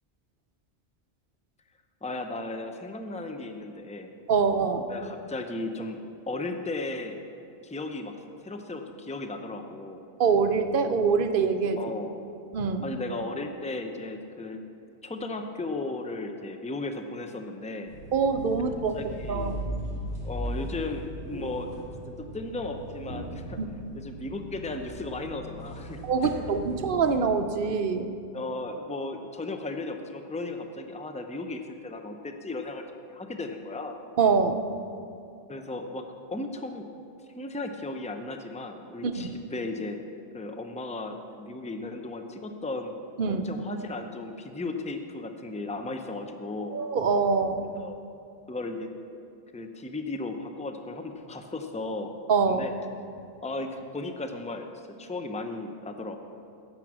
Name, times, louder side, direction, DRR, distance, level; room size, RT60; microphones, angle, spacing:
voice 1, 2.0-4.1 4.9-6.0 6.3-7.2 7.6-8.2 8.4-10.0 11.8-12.2 12.8-14.6 15.0-17.9 18.9-19.6 20.2-21.7 22.1-23.6 23.9-26.5 28.3-32.8 33.1-34.0 35.5-36.0 36.3-36.9 37.4-40.0 40.3-42.9 43.3-46.8 47.6-48.0 48.5-48.9 49.5-52.1 52.5-52.7 53.4-54.7 55.0-56.2, left 2 dB, 10° left, 5 dB, 0.4 m, -35 dB
voice 2, 4.3-4.9 10.2-11.8 12.5-12.9 18.1-18.9 19.3-19.6 23.6-23.7 26.0-28.1 34.2-34.6 39.0-39.3 43.2-43.4 46.7-47.6 52.3-52.6, right 5 dB, 55° right, 8 dB, 0.7 m, -24 dB
sound 1, 17.9-27.2, equal, 70° left, 3.0 m, -38 dB
15.5 x 6.0 x 6.0 m, 2.6 s
omnidirectional pair, 1.2 m